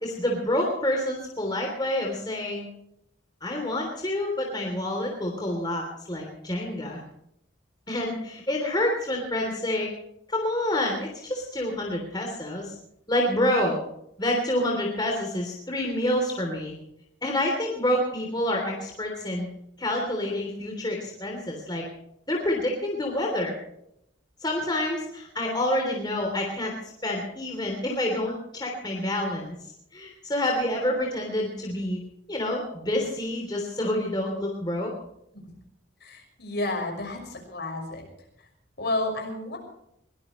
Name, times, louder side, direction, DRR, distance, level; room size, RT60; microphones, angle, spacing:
voice 1, 0.0-2.7 3.4-7.0 7.9-9.9 10.3-12.7 13.1-13.8 14.2-16.7 17.2-19.5 19.8-21.8 22.3-23.5 24.4-29.6 29.9-32.0 32.3-34.9, left 1 dB, 20° left, 0 dB, 3.3 m, -28 dB
voice 2, 36.0-38.0 38.8-39.6, left 2 dB, 55° left, 2 dB, 6.0 m, -31 dB
22.5 x 19.5 x 3.2 m, 0.77 s
head